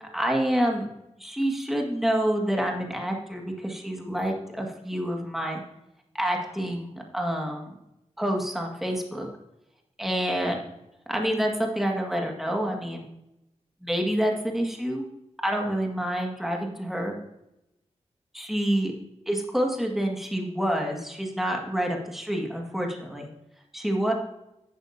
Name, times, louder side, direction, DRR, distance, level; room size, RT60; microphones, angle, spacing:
voice 1, 0.1-0.9 1.2-5.6 6.1-7.7 8.2-9.3 10.0-10.7 11.1-13.0 13.8-15.1 15.4-17.2 18.3-18.9 19.3-23.3 23.7-24.1, equal, ahead, 1 dB, 2.0 m, -27 dB
11.5 x 8.8 x 2.8 m, 0.87 s
cardioid pair, 65°, 12 cm